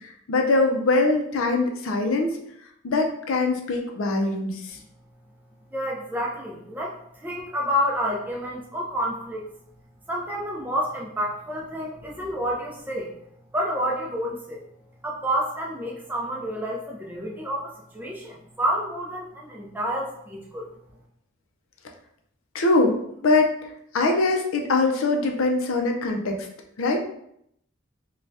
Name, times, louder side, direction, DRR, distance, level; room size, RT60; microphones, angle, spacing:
voice 1, 0.3-2.3 2.8-4.5 22.5-22.9 23.2-23.5 23.9-26.4 26.8-27.0, left 2 dB, 80° left, 3 dB, 0.5 m, -22 dB
voice 2, 5.7-9.5 10.1-13.1 13.5-14.6 15.0-20.7, equal, 10° right, -2 dB, 0.4 m, -29 dB
3.3 x 2.2 x 2.6 m, 0.74 s
head